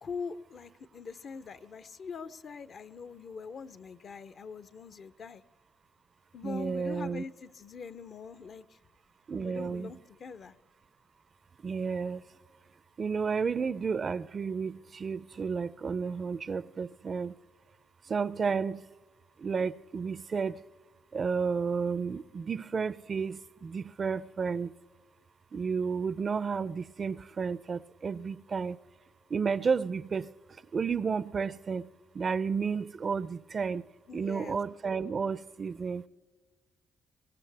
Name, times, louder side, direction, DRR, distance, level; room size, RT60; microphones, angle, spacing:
voice 1, 0.0-5.4 6.3-8.8 9.4-10.6 34.1-34.6, left 5 dB, 55° left, 0.6 m, -43 dB
voice 2, 6.4-7.2 9.3-9.9 11.6-12.2 13.0-17.3 18.1-18.9 19.4-20.6 21.1-24.7 25.5-28.8 29.3-30.3 30.7-31.9 32.1-33.8 34.1-36.0, right 5 dB, 40° right, 0.4 m, -32 dB
23.5 x 18.0 x 3.4 m
cardioid pair, 90°, 0 cm